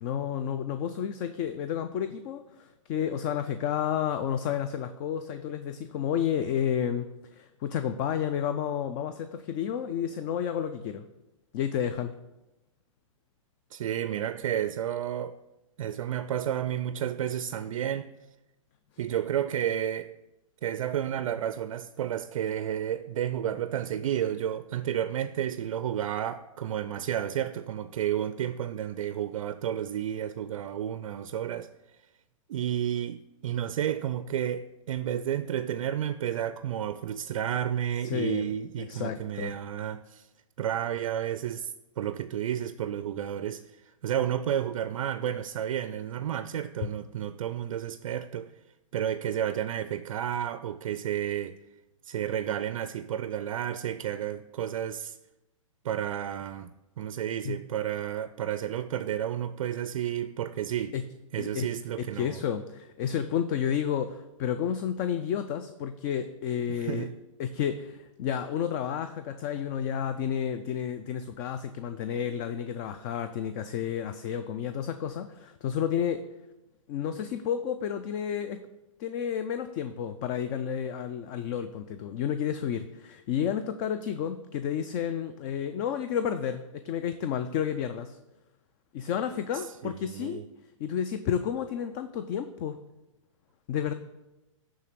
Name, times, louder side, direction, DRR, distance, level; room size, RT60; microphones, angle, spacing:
voice 1, 0.0-11.1 11.5-12.1 38.0-38.5 38.8-39.5 57.4-57.6 60.9-61.0 61.4-61.7 62.1-67.1 67.4-76.2 76.9-78.6 79.0-88.2 88.9-90.4 90.8-92.8 93.7-93.9, left 8 dB, 35° left, 0.4 m, -31 dB
voice 2, 13.7-15.4 15.8-18.1 19.0-20.1 20.6-31.7 32.5-40.3 40.6-48.5 48.9-51.6 52.0-55.2 55.8-56.7 57.0-60.9 61.3-62.4 66.8-67.1 89.5-90.5, right 10 dB, 70° right, 0.4 m, -31 dB
8.3 x 3.8 x 6.8 m
hypercardioid pair, 125°, 17 cm